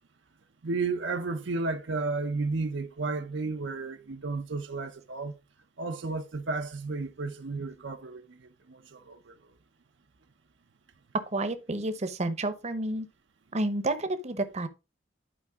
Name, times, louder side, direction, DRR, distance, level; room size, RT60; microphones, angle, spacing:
voice 1, 0.6-5.4 5.8-9.4, right 3 dB, 70° right, 0.7 m, -33 dB
voice 2, 11.3-13.1 13.5-14.7, right 2 dB, 35° right, 0.8 m, -30 dB
11.0 x 4.6 x 3.5 m
head